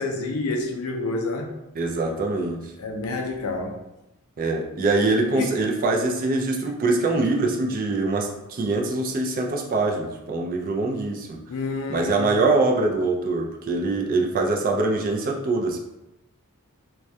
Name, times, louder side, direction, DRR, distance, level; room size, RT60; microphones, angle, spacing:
voice 1, 0.0-1.5 2.8-3.8 5.3-5.5 11.5-12.4, left 2 dB, 70° left, 3 dB, 0.4 m, -28 dB
voice 2, 1.8-2.6 4.4-11.4 11.9-15.8, right 3 dB, 40° right, 1 dB, 0.3 m, -23 dB
2.2 x 2.1 x 2.6 m, 0.93 s
head